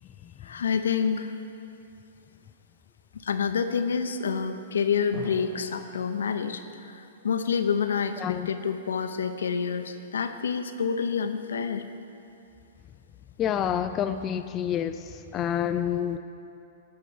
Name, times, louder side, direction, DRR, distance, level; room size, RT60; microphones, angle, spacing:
voice 1, 0.4-1.4 3.1-11.9, left 6 dB, 75° left, 9 dB, 0.6 m, -28 dB
Drum, 5.1-8.8, right 1 dB, 30° right, 2.3 m, -47 dB
voice 2, 13.4-15.0 15.3-16.2, left 9 dB, 30° left, 8 dB, 0.4 m, -28 dB
12.0 x 5.7 x 7.1 m, 2.7 s
hypercardioid pair, 115°, 0 cm